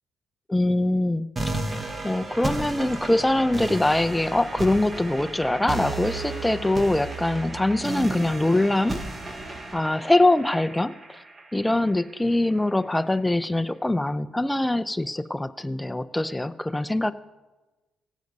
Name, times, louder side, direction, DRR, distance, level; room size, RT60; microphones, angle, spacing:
voice 1, 0.5-1.3 2.0-9.0 9.7-11.2 11.5-17.1, left 1 dB, 10° left, 14 dB, 0.5 m, -23 dB
sound 1, 1.4-12.3, right 2 dB, 25° right, 1.3 m, -33 dB
15.5 x 9.2 x 5.3 m, 1.2 s
cardioid pair, 90°, 0 cm